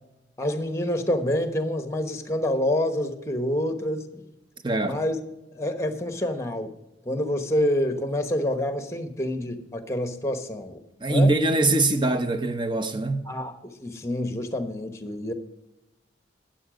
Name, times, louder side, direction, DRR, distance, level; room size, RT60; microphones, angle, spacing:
voice 1, 0.4-4.2 4.8-5.2 5.5-6.7 7.0-10.8 11.1-11.3 13.3-15.3, left 1 dB, 15° left, 1.1 m, -27 dB
voice 2, 4.6-5.0 11.0-13.3, right 2 dB, 25° right, 0.8 m, -23 dB
12.5 x 9.1 x 5.1 m
head